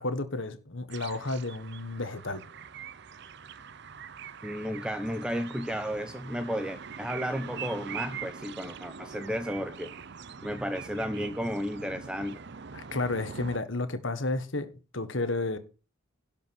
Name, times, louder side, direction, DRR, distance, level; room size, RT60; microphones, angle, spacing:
voice 1, 0.0-2.4 12.7-15.6, left 2 dB, 65° left, 1.5 m, -32 dB
sound 1, 0.9-13.6, right 6 dB, 55° right, 0.7 m, -43 dB
voice 2, 4.4-9.9 10.4-12.4, equal, 5° right, 0.6 m, -33 dB
11.5 x 5.3 x 7.1 m
head